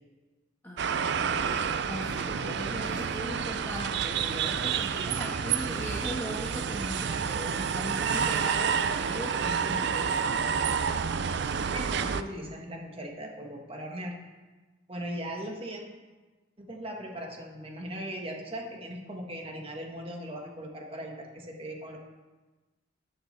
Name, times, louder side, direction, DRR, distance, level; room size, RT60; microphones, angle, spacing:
voice 1, 0.6-10.3, equal, 10° left, -6 dB, 1.3 m, -39 dB
sound 1, 0.8-12.2, right 6 dB, 60° right, 0.4 m, -29 dB
voice 2, 4.9-5.3 8.6-9.1 11.7-14.1 14.9-15.8 16.6-22.0, right 1 dB, 30° right, 0 dB, 1.5 m, -39 dB
13.5 x 8.3 x 3.3 m, 1.3 s
head